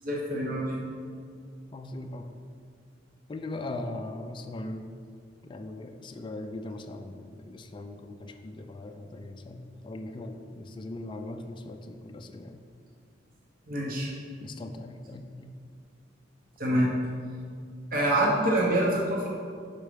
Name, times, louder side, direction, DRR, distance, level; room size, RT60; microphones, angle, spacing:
voice 1, 0.0-0.8 13.7-14.1 16.6-16.9 17.9-19.3, right 1 dB, 50° right, -3 dB, 0.9 m, -26 dB
voice 2, 1.7-2.3 3.3-4.9 5.4-12.6 14.4-15.5, left 2 dB, 25° left, 5 dB, 0.3 m, -39 dB
6.1 x 4.5 x 4.9 m, 2.2 s
head